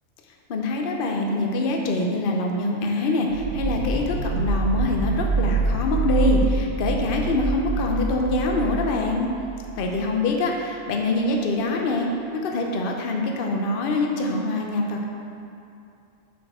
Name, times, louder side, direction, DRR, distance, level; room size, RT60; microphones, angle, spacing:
voice 1, 0.5-9.3 9.8-12.1 12.4-15.0, left 2 dB, 50° left, 1 dB, 0.8 m, -24 dB
sound 1, 3.3-10.0, right 3 dB, 45° right, 2.0 m, -26 dB
7.0 x 4.4 x 4.9 m, 2.6 s
omnidirectional pair, 1.3 m